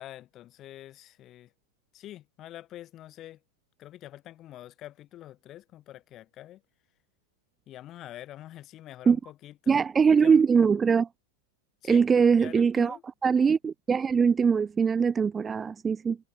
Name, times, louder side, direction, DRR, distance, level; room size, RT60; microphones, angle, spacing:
voice 1, 0.0-1.5 1.9-3.4 3.8-6.6 7.7-10.4 11.8-12.0 12.3-13.0, left 13 dB, 35° left, 7.4 m, -46 dB
voice 2, 9.7-11.1 11.9-13.0 13.2-16.2, right 6 dB, 20° right, 0.6 m, -22 dB
hypercardioid pair, 105°, 0 cm